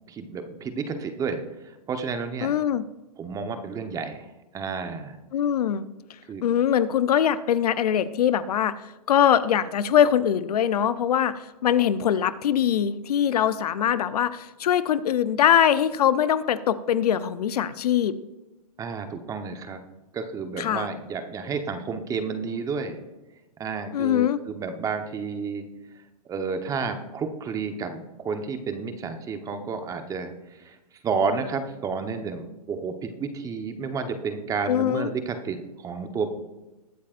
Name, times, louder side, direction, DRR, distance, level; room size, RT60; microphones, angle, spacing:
voice 1, 0.1-2.5 3.2-4.2 4.5-5.2 6.3-6.4 18.8-19.8 20.1-23.0 23.6-25.6 26.3-30.8 31.0-36.3, right 5 dB, 15° right, 7 dB, 1.1 m, -31 dB
voice 2, 2.4-2.8 5.3-5.8 6.4-8.8 9.1-18.2 20.6-20.9 23.9-24.4 34.7-35.1, left 9 dB, 70° left, 14 dB, 0.7 m, -22 dB
21.0 x 8.4 x 2.6 m, 1.1 s
hypercardioid pair, 140°, 20 cm